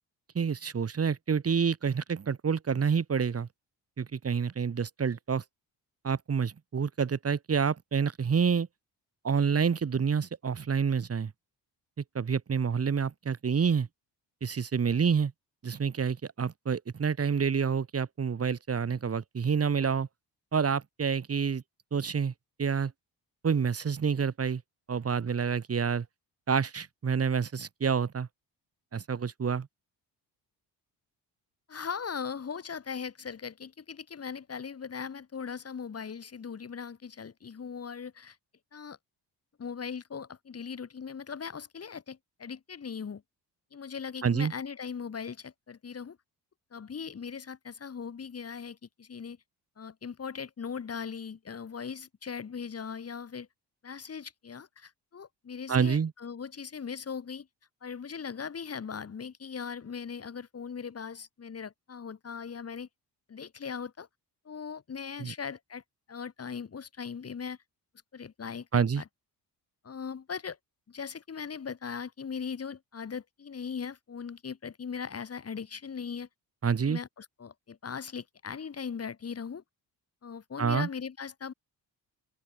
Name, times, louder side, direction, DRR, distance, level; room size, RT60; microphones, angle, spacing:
voice 1, 0.3-3.5 4.0-5.4 6.0-8.7 9.2-11.3 12.1-13.9 14.4-15.3 15.6-20.1 20.5-21.6 21.9-22.3 22.6-22.9 23.4-24.6 24.9-26.1 26.5-28.3 28.9-29.7 44.2-44.5 55.7-56.1 65.2-65.3 68.7-69.0 76.6-77.0 80.6-80.9, right 6 dB, 35° right, 5.5 m, -28 dB
voice 2, 31.7-38.4 38.7-39.0 39.6-43.2 43.7-46.2 46.7-49.4 49.8-53.5 53.8-57.5 57.8-62.9 63.3-64.1 64.4-65.8 66.1-67.6 68.1-69.0 69.8-70.6 70.9-76.3 76.8-79.6 80.2-81.5, left 6 dB, 35° left, 5.0 m, -39 dB
open air
cardioid pair, 155°, 40 cm